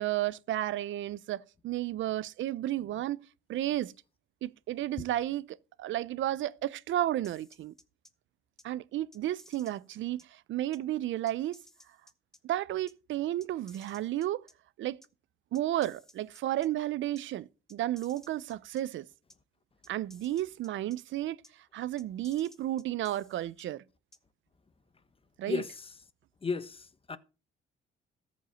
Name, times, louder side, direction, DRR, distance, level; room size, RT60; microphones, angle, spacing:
voice 1, 0.0-3.2 3.5-3.9 4.4-7.7 8.6-11.6 12.4-14.5 14.8-15.0 15.5-19.1 19.9-21.4 21.7-23.8 25.4-25.6, right 13 dB, 75° right, 0.6 m, -32 dB
sound 1, 7.2-8.1 8.6-8.7 9.1-10.3 10.7-10.8 11.3-12.4 12.9-13.0 13.4-14.5 15.0-15.1 15.6-16.7 17.2-17.3 17.7-18.8 19.3-19.4 19.8-21.0 21.4-21.5 22.0-23.6 24.1-24.2, left 1 dB, ahead, 1.4 m, -57 dB
voice 2, 25.4-26.0 26.4-27.2, left 4 dB, 30° left, 1.2 m, -35 dB
14.0 x 5.4 x 6.9 m
cardioid pair, 90°, 20 cm